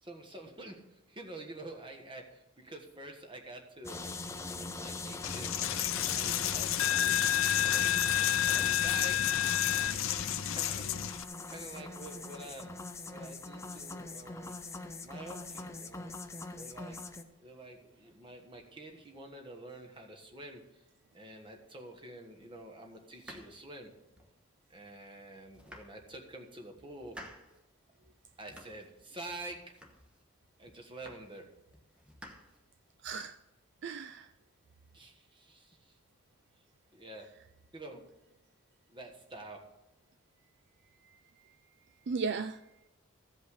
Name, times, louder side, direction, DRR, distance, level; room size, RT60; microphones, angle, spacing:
voice 1, 0.0-4.0 4.7-5.7 6.1-7.1 7.4-9.2 10.5-10.8 11.5-12.7 13.0-14.5 15.0-16.1 16.5-17.0 17.4-20.8 21.1-23.9 24.7-27.2 28.4-29.6 30.6-31.5 34.9-36.0 36.9-37.3 37.7-38.0 38.9-39.6, right 2 dB, 25° right, 1.4 m, -48 dB
sound 1, 3.8-17.2, left 3 dB, 15° left, 0.6 m, -42 dB
Coin (dropping), 5.2-11.2, left 11 dB, 75° left, 0.6 m, -29 dB
sound 2, 23.1-24.4 24.9-25.0 25.4-26.4 26.8-27.6 28.0-28.9 29.3-30.3 30.7-31.5 31.7-33.0, equal, 5° right, 1.0 m, -53 dB
voice 2, 33.0-33.4 33.8-34.3 41.0-41.6 42.1-42.6, right 5 dB, 55° right, 0.4 m, -37 dB
15.0 x 5.4 x 6.5 m
head